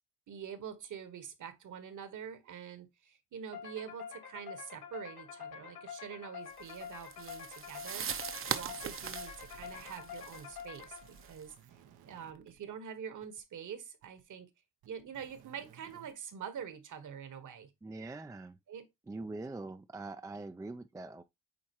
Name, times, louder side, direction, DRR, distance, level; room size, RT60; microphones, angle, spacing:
voice 1, 0.3-14.5 14.8-17.7 18.7-18.9, right 8 dB, 55° right, 1.5 m, -45 dB
sound 1, 3.5-11.4, left 8 dB, 80° left, 2.7 m, -47 dB
sound 2, 6.6-11.5, right 7 dB, 35° right, 0.8 m, -41 dB
sound 3, 8.0-12.6 13.2-13.4 14.0-14.2 14.8-16.1, right 9 dB, 80° right, 1.1 m, -60 dB
voice 2, 17.8-18.6 19.1-21.2, right 2 dB, 10° right, 0.4 m, -43 dB
8.6 x 4.2 x 3.0 m
cardioid pair, 115°, 37 cm